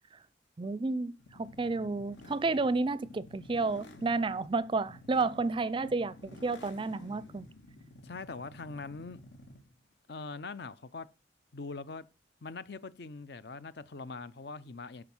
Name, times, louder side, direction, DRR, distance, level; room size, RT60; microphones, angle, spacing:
voice 1, 0.6-6.1 6.4-7.5, right 3 dB, 25° right, 0.4 m, -31 dB
sound 1, 1.2-9.8, left 1 dB, 85° left, 2.3 m, -52 dB
voice 2, 8.0-9.2 10.1-11.1 11.5-12.0 12.4-15.0, left 4 dB, 60° left, 0.7 m, -42 dB
12.5 x 4.9 x 6.1 m
head